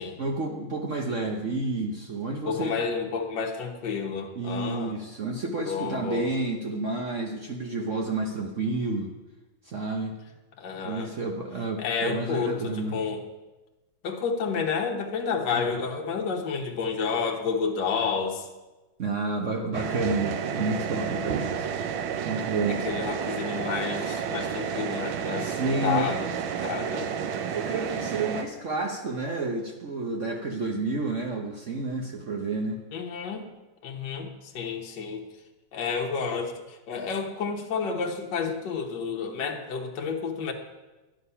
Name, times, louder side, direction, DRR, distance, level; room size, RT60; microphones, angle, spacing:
voice 1, 0.2-2.8 4.3-9.1 9.6-10.2 10.8-13.0 15.5-15.6 19.0-21.7 22.2-22.8 23.3-23.4 25.3-26.1 27.5-32.8, right 3 dB, 55° right, 2 dB, 0.9 m, -30 dB
voice 2, 2.4-5.0 5.7-6.3 10.6-11.1 11.8-13.2 14.0-18.5 22.7-26.3 26.6-27.1 32.9-33.5 33.8-35.2 35.7-40.5, left 5 dB, 55° left, 2 dB, 1.7 m, -30 dB
sound 1, 19.7-28.4, right 7 dB, 70° right, 1.5 m, -31 dB
11.5 x 9.1 x 5.6 m, 1.1 s
omnidirectional pair, 2.4 m